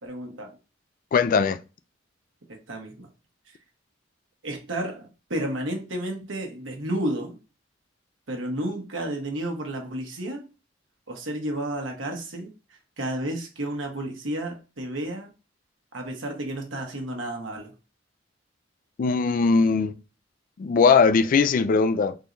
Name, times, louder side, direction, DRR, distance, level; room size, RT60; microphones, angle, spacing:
voice 1, 0.0-0.6 2.5-3.1 3.5-3.6 4.4-7.4 8.3-10.5 11.1-12.5 13.0-15.3 15.9-17.7, right 1 dB, 80° right, 1.2 m, -32 dB
voice 2, 1.1-1.6 19.0-19.9 20.6-22.2, left 5 dB, 45° left, 0.3 m, -20 dB
3.8 x 2.6 x 3.0 m
head